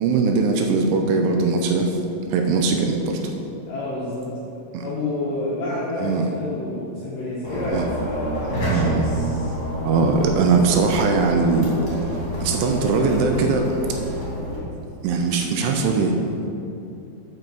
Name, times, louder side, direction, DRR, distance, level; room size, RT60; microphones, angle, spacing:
voice 1, 0.0-2.0 2.3-3.2 4.7-4.8 6.0-6.3 7.6-7.9 8.7-9.1 9.8-11.7 12.4-13.7 15.0-16.2, right 4 dB, 80° right, 3 dB, 3.0 m, -20 dB
voice 2, 3.7-4.2 4.8-9.6, left 2 dB, 60° left, -8 dB, 2.4 m, -29 dB
sound 1, 7.4-14.6, right 1 dB, 30° left, 2.3 m, -28 dB
9.1 x 5.9 x 6.8 m, 2.7 s
omnidirectional pair, 5.8 m